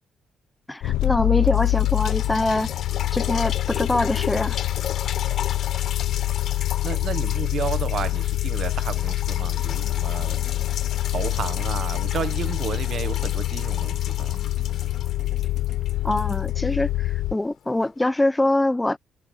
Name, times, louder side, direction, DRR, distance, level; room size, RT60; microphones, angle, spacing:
voice 1, 0.7-2.7 3.1-4.6 16.0-19.0, left 1 dB, 10° left, 0.7 m, -24 dB
sound 1, 0.8-17.3, left 16 dB, 90° left, 0.4 m, -25 dB
sound 2, 1.5-17.2 17.8-17.9, left 9 dB, 65° left, 3.7 m, -36 dB
voice 2, 6.8-10.4 11.1-14.4, right 8 dB, 60° right, 1.1 m, -32 dB
sound 3, 9.3-15.9, right 2 dB, 20° right, 2.0 m, -50 dB
cardioid pair, 90°, 0 cm